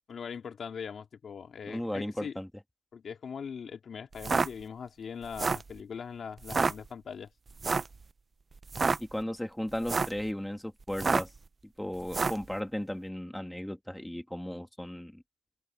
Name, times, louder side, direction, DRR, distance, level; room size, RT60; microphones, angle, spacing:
voice 1, 0.1-2.4 2.9-7.3, left 6 dB, 50° left, 2.5 m, -41 dB
voice 2, 1.6-2.5 9.0-11.3 11.8-15.2, left 1 dB, 5° left, 2.5 m, -35 dB
sound 1, 4.1-4.5 5.2-5.7 6.4-6.7 7.6-7.9 8.6-9.0 9.7-10.2 10.9-11.4 12.1-12.4, right 4 dB, 30° right, 0.7 m, -28 dB
open air
cardioid pair, 90°, 0 cm